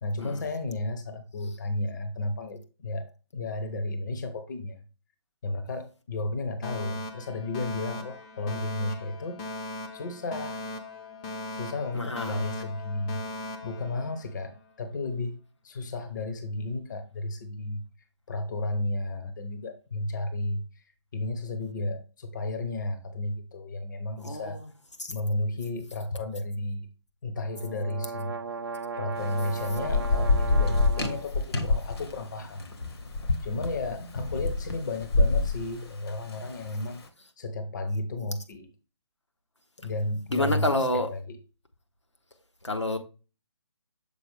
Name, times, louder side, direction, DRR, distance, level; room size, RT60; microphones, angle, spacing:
voice 1, 0.0-4.8 5.4-9.4 9.9-10.6 11.5-13.2 13.6-17.8 18.3-24.6 25.1-26.9 27.2-28.4 29.0-32.6 33.4-37.0 37.4-38.7 39.8-40.8 41.1-41.2, left 2 dB, 40° left, 0.8 m, -33 dB
Alarm, 6.6-14.6, left 2 dB, 20° left, 0.6 m, -39 dB
voice 2, 11.9-12.5 24.2-24.7 25.0-25.1 40.3-41.1 42.6-43.0, left 1 dB, 80° left, 1.2 m, -28 dB
sound 1, 27.4-31.3, right 5 dB, 50° right, 0.5 m, -36 dB
Thunder / Rain, 29.2-36.8, left 3 dB, 60° left, 1.1 m, -27 dB
6.9 x 4.4 x 3.3 m
figure-of-eight pair, 140°, 15 cm